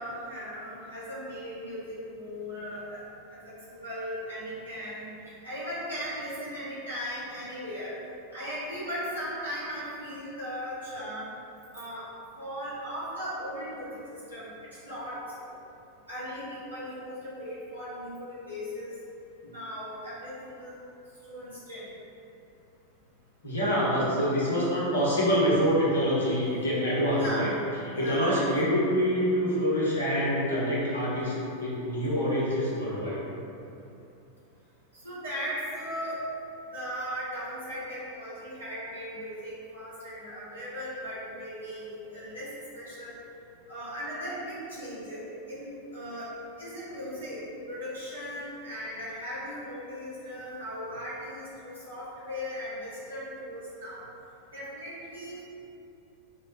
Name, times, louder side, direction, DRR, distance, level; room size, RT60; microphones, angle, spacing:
voice 1, 0.0-3.0 3.7-5.1 5.4-7.9 8.3-11.3 11.7-12.0 12.4-14.0 14.3-14.5 14.8-15.2 16.1-18.9 19.5-20.7 21.3-21.9 27.2-27.5 27.9-28.4 34.9-36.2 36.7-42.5 42.7-43.2 43.7-45.2 45.5-46.3 46.6-47.4 47.7-54.0 54.5-55.4, equal, 80° right, -11 dB, 1.4 m, -37 dB
voice 2, 23.4-27.5 27.9-33.2, equal, 70° left, -7 dB, 1.0 m, -26 dB
4.4 x 2.1 x 3.2 m, 2.7 s
figure-of-eight pair, 90°, 0 cm